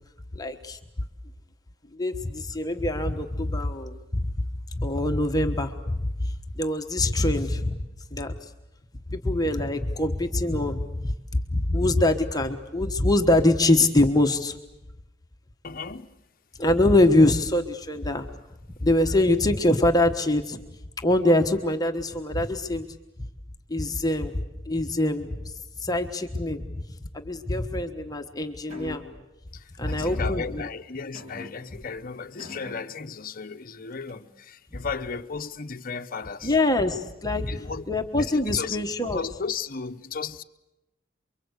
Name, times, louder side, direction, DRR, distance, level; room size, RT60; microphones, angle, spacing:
voice 1, 0.3-0.8 1.9-4.3 4.7-7.8 8.1-8.5 9.1-14.6 16.6-18.3 18.8-20.6 21.0-22.9 23.7-24.3 24.7-25.5 25.8-26.8 27.1-29.0 29.8-30.6 36.4-37.5 37.9-39.2, left 1 dB, 20° left, 1.3 m, -24 dB
voice 2, 15.6-16.1 29.5-36.5 37.5-37.8 38.2-40.4, left 5 dB, 45° left, 0.9 m, -35 dB
sound 1, 28.7-29.3 29.9-30.7 31.1-31.9 32.4-33.2 34.1-34.4, left 2 dB, 35° right, 3.2 m, -43 dB
28.5 x 23.5 x 8.2 m
head